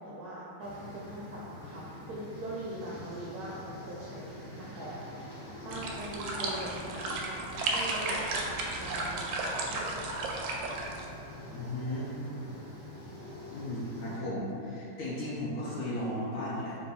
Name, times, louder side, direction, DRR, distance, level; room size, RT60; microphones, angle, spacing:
voice 1, 0.0-5.0 5.3-7.4 7.7-9.3 9.6-10.0, right 1 dB, 70° right, -6 dB, 0.9 m, -41 dB
sound 1, 0.6-14.2, left 1 dB, 45° left, 1.1 m, -46 dB
sound 2, 5.7-11.1, right 2 dB, 90° right, 1.3 m, -34 dB
voice 2, 11.5-12.1 13.5-16.8, left 1 dB, 75° left, -7 dB, 0.7 m, -35 dB
3.8 x 2.6 x 3.8 m, 2.8 s
omnidirectional pair, 2.1 m